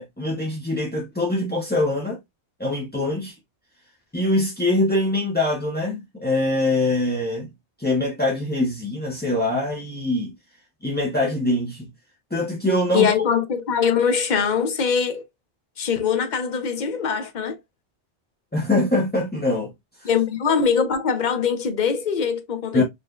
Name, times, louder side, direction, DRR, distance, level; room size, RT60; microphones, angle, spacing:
voice 1, 0.0-2.2 2.6-3.3 4.1-7.5 7.8-10.3 10.8-11.9 12.3-13.1 18.5-19.7 20.0-20.1 22.7-22.8, left 2 dB, 10° left, 0.6 m, -23 dB
voice 2, 12.9-15.3 15.8-17.6 20.0-22.8, left 6 dB, 50° left, 0.8 m, -22 dB
4.3 x 3.3 x 2.3 m
omnidirectional pair, 1.1 m